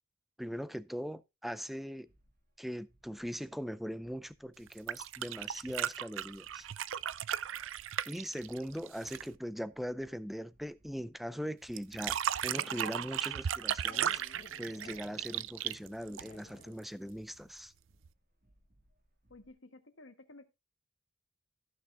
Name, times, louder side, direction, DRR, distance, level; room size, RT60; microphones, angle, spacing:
voice 1, 0.4-2.1 2.6-6.7 8.1-12.2 12.4-17.7, equal, ahead, 0.5 m, -40 dB
sound 1, 2.0-19.5, equal, 45° right, 2.4 m, -70 dB
sound 2, 4.7-9.3 11.8-16.6 18.0-18.1, right 10 dB, 70° right, 0.4 m, -36 dB
Growling, 12.5-13.2 13.8-16.8 17.1-17.3 17.6-17.7, left 3 dB, 40° left, 0.9 m, -55 dB
voice 2, 19.3-20.5, left 2 dB, 65° left, 1.5 m, -54 dB
14.0 x 6.3 x 3.8 m
head